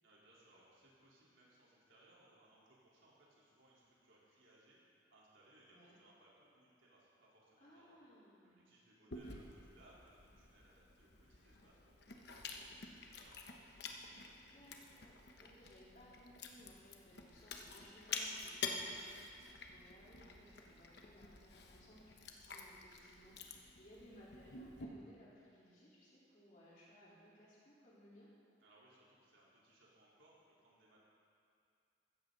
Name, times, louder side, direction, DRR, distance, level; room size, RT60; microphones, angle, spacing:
voice 1, 0.0-8.0 8.4-14.6 28.6-31.0, right 1 dB, 90° right, -6 dB, 3.9 m, -67 dB
voice 2, 7.6-8.6 9.0-9.5 14.5-28.3, equal, 40° left, -8 dB, 3.9 m, -62 dB
Chewing mastication, 9.1-24.8, left 4 dB, 55° left, 1.1 m, -49 dB
15.5 x 14.0 x 4.0 m, 2.4 s
head